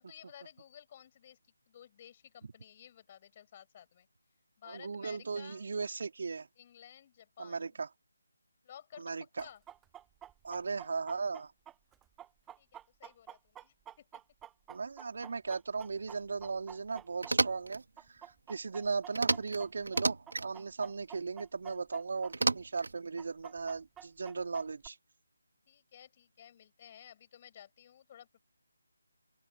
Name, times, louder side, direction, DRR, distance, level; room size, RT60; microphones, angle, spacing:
voice 1, 0.0-1.4 1.7-4.1 4.6-5.7 6.6-7.8 8.6-9.6 12.6-14.2 25.7-28.4, left 10 dB, 30° left, 6.1 m, -55 dB
voice 2, 4.7-6.5 7.4-7.9 9.0-9.4 10.4-11.5 14.7-17.8 18.1-25.0, right 4 dB, 50° right, 4.1 m, -37 dB
Chicken rooster, 9.4-17.7 18.0-22.3 22.6-22.7 23.2-24.9, right 11 dB, 10° right, 1.0 m, -50 dB
sound 1, 17.2-17.8 19.2-19.6 19.9-20.5 22.3-23.0, right 3 dB, 70° right, 2.5 m, -31 dB
open air
figure-of-eight pair, 155°, 0 cm